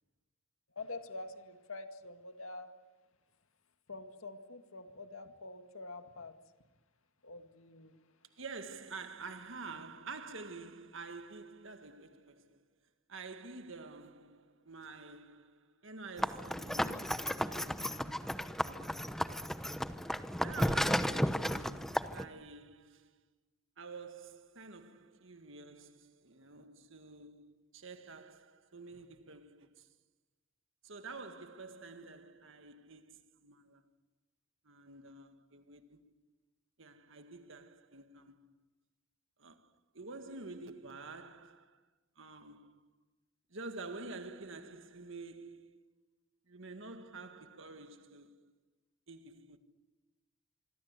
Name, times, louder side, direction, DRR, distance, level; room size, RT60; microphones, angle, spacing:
voice 1, 0.8-2.7 3.9-6.4 7.2-8.0, left 2 dB, 70° left, 2.0 m, -46 dB
voice 2, 8.3-12.7 13.1-19.6 20.4-23.2 23.8-29.9 30.8-33.9 34.6-36.1 36.8-38.5 39.4-41.8 42.2-42.9 43.5-45.8 46.5-48.5 49.1-49.6, right 3 dB, 65° right, 1.8 m, -49 dB
sound 1, 16.2-22.2, equal, ahead, 0.9 m, -34 dB
26.0 x 24.5 x 8.2 m
head